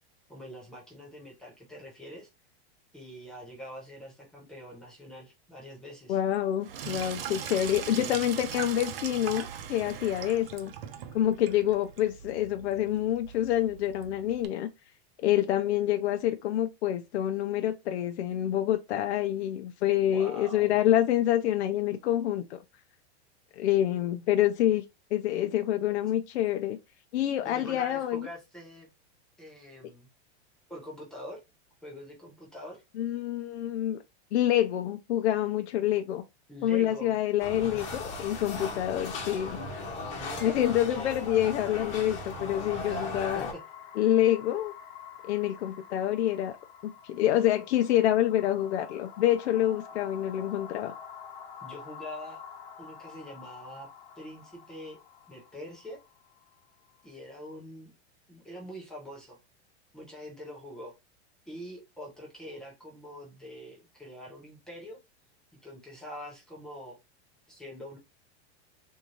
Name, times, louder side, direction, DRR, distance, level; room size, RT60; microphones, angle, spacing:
voice 1, 0.3-2.3 2.9-6.2 7.9-8.2 20.1-20.8 27.4-28.9 29.4-30.1 30.7-31.4 31.8-32.8 36.5-37.2 40.1-41.1 42.9-43.6 51.6-52.4 52.8-53.9 54.2-55.0 55.3-56.0 57.0-57.9 58.3-59.4 59.9-60.9 61.5-65.0 65.5-67.0 67.5-68.0, equal, ahead, 0.3 m, -44 dB
voice 2, 6.1-10.7 11.1-14.7 15.2-22.6 23.6-24.8 25.1-26.8 27.1-28.3 33.0-34.0 34.3-36.2 36.6-39.6 40.4-43.5 44.0-44.7 45.2-46.6 47.0-50.9, left 12 dB, 80° left, 0.6 m, -27 dB
Sink (filling or washing), 6.6-14.5, right 8 dB, 60° right, 0.7 m, -40 dB
sound 1, 37.4-43.5, left 2 dB, 20° left, 0.8 m, -37 dB
sound 2, 40.1-57.1, left 8 dB, 55° left, 0.8 m, -49 dB
3.6 x 2.7 x 3.0 m
supercardioid pair, 170°, 33 cm